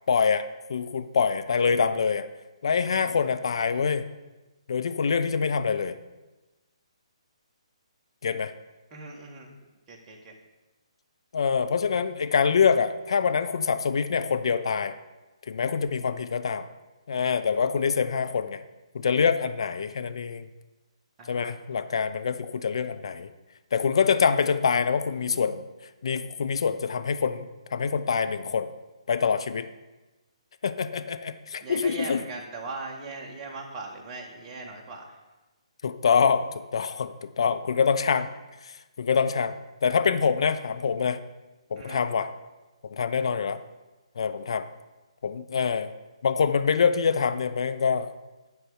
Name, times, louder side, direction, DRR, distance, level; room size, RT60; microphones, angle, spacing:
voice 1, 0.1-0.4 0.7-2.3 2.6-4.0 4.7-6.0 8.2-8.5 11.3-14.9 15.5-16.6 17.1-18.6 18.9-20.5 21.3-23.3 23.7-25.6 26.0-28.7 29.1-29.7 30.6-32.2 35.8-36.5 36.7-38.3 39.0-41.2 41.7-42.3 42.9-43.6 44.2-44.6 45.2-45.9 46.2-48.1, left 6 dB, 55° left, 10 dB, 0.6 m, -25 dB
voice 2, 8.9-9.5 9.9-10.3 21.2-21.5 31.6-35.2 41.7-42.0, right 2 dB, 20° right, 0 dB, 1.6 m, -39 dB
10.5 x 4.7 x 6.3 m, 1.1 s
figure-of-eight pair, 135°, 3 cm